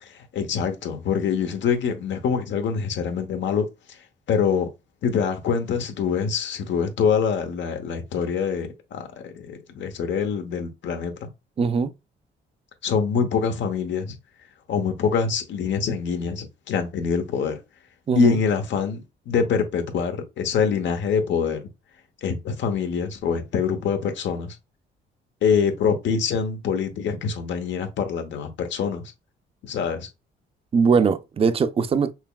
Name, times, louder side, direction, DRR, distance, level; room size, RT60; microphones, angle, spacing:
voice 1, 0.0-3.6 4.3-4.7 5.0-11.3 12.8-14.2 14.7-17.6 18.1-21.6 22.2-24.6 25.4-29.1 29.6-30.1, left 6 dB, 70° left, 0.9 m, -25 dB
voice 2, 11.6-11.9 18.1-18.4 30.7-32.1, right 5 dB, 30° right, 0.4 m, -20 dB
5.7 x 2.2 x 2.3 m
cardioid pair, 90°, 20 cm